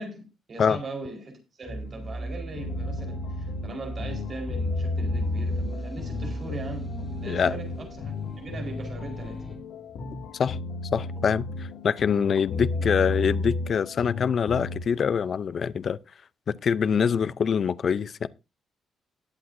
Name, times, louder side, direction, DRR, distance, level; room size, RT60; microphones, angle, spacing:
voice 1, 0.0-9.4 12.5-12.9, right 2 dB, 30° right, 4.2 m, -40 dB
sound 1, 1.7-9.6, right 1 dB, ahead, 3.0 m, -37 dB
sound 2, 2.5-14.8, left 3 dB, 90° left, 2.2 m, -33 dB
voice 2, 10.9-16.0 16.5-18.3, left 7 dB, 40° left, 0.5 m, -25 dB
20.0 x 7.8 x 2.6 m
cardioid pair, 170°, 0 cm